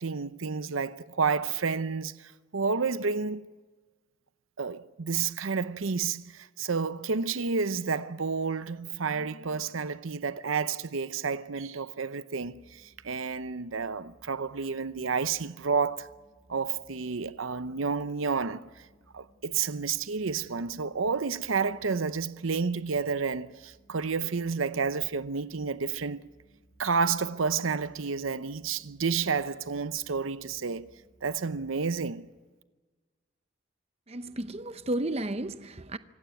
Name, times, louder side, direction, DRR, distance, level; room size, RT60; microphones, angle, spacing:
voice 1, 0.0-3.4 4.6-16.1 16.5-18.8 19.1-26.3 26.8-30.9 31.2-32.3, right 5 dB, 85° right, 0.8 m, -30 dB
sound 1, 12.4-31.9, right 1 dB, 15° right, 4.2 m, -62 dB
voice 2, 34.1-36.0, right 1 dB, 30° right, 0.8 m, -33 dB
25.5 x 15.5 x 9.2 m
head